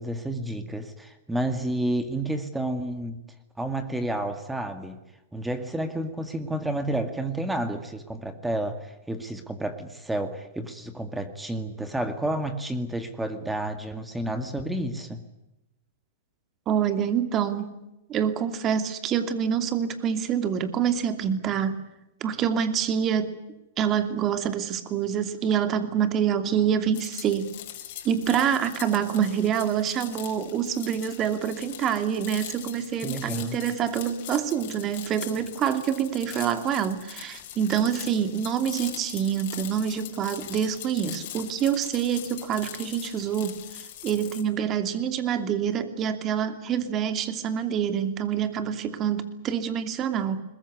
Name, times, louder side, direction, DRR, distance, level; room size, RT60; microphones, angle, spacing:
voice 1, 0.0-3.2 3.6-5.0 5.3-15.2 33.0-33.6, right 1 dB, 5° right, 8 dB, 2.2 m, -30 dB
voice 2, 16.7-17.8 18.1-21.8 22.2-23.4 23.8-27.5 28.0-43.6 44.0-50.4, right 8 dB, 30° right, 9 dB, 2.7 m, -26 dB
sound 1, 26.9-44.4, left 12 dB, 55° left, 4.7 m, -41 dB
21.5 x 21.5 x 9.7 m, 0.92 s
hypercardioid pair, 130°, 0 cm